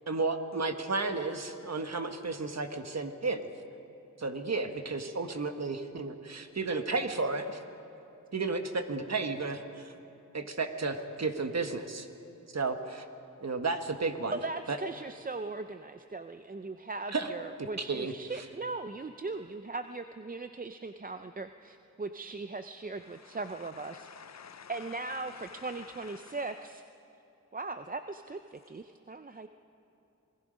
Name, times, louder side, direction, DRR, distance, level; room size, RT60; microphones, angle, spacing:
voice 1, 0.1-3.5 4.2-7.6 8.3-9.9 10.3-12.1 12.5-13.0 13.4-14.4 14.7-14.8 17.1-17.3 17.6-18.1, right 3 dB, 55° right, 6 dB, 1.4 m, -33 dB
voice 2, 14.3-24.1 24.7-26.8 27.5-29.5, right 3 dB, 25° right, 8 dB, 0.6 m, -39 dB
voice 3, 23.8-26.4, left 7 dB, 55° left, 14 dB, 0.6 m, -50 dB
27.0 x 19.0 x 5.2 m, 2.9 s
wide cardioid pair, 65°, 32 cm